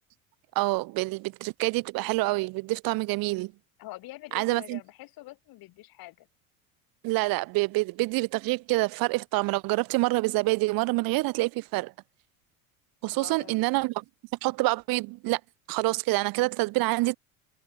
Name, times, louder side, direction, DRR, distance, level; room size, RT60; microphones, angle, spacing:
voice 1, 0.5-3.5 4.3-4.8 7.0-11.9 13.0-14.0 14.4-15.4 15.7-17.2, right 23 dB, 55° right, 1.0 m, -27 dB
voice 2, 3.8-6.3 13.1-13.6, left 18 dB, 55° left, 3.3 m, -45 dB
hypercardioid pair, 75°, 42 cm